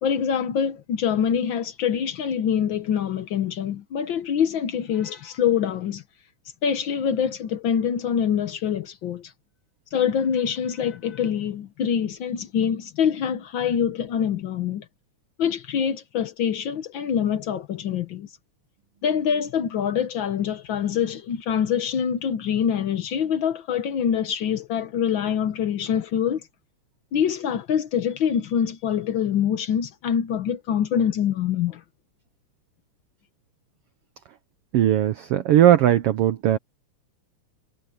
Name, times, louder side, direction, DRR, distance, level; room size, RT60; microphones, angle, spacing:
voice 1, 0.0-6.0 6.6-9.3 9.9-14.8 15.4-18.3 19.0-26.5 27.1-31.8, left 8 dB, 75° left, 1.1 m, -25 dB
voice 2, 34.7-36.6, right 11 dB, 80° right, 1.3 m, -18 dB
omnidirectional pair, 3.6 m